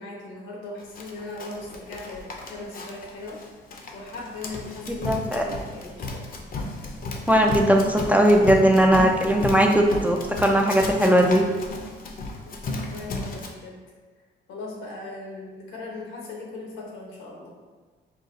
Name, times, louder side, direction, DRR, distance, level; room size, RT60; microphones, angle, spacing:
voice 1, 0.0-3.4 3.9-5.1 5.3-6.4 12.4-13.7 14.5-17.5, left 2 dB, 90° left, -2 dB, 1.1 m, -38 dB
Run, 1.0-13.5, left 2 dB, 45° left, 0.6 m, -34 dB
voice 2, 4.9-5.4 7.3-11.4, equal, 10° right, 1 dB, 0.4 m, -19 dB
4.0 x 2.3 x 3.7 m, 1.4 s
cardioid pair, 90°, 20 cm